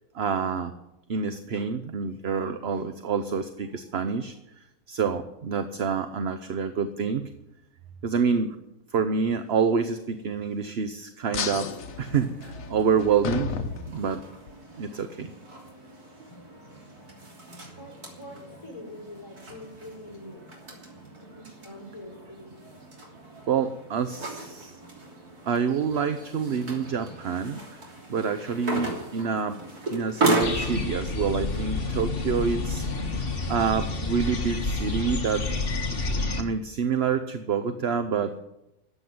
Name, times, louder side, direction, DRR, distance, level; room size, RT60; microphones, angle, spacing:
voice 1, 0.1-0.7 1.1-4.3 4.9-7.3 8.0-8.5 8.9-11.7 12.0-13.5 13.9-14.2 14.8-15.3 23.5-24.8 25.5-27.6 28.1-29.6 29.9-33.1 33.5-35.4 36.4-38.3, right 6 dB, 50° right, 9 dB, 0.9 m, -27 dB
sound 1, 11.3-14.5, left 6 dB, 60° left, 1.3 m, -34 dB
sound 2, 11.3-30.8, right 2 dB, 80° right, 3.7 m, -35 dB
voice 2, 17.8-20.8 21.2-22.5, left 1 dB, 15° left, -1 dB, 6.4 m, -44 dB
sound 3, 30.4-36.4, left 3 dB, 40° left, 1.7 m, -29 dB
13.5 x 8.7 x 9.4 m, 0.87 s
omnidirectional pair, 1.6 m